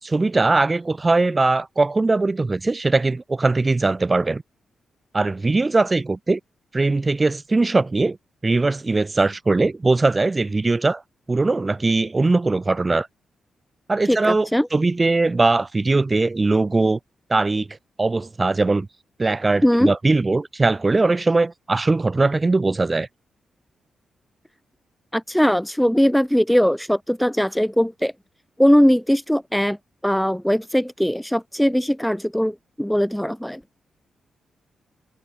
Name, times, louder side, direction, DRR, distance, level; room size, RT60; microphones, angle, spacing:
voice 1, 0.0-4.4 5.1-6.4 6.7-8.2 8.4-11.0 11.3-13.1 13.9-17.0 17.3-18.9 19.2-23.1, right 3 dB, 30° right, 6.2 m, -20 dB
voice 2, 14.1-14.7 19.6-19.9 25.1-28.1 28.6-29.8 30.0-33.6, equal, 5° left, 2.1 m, -20 dB
cardioid pair, 65°, 0 cm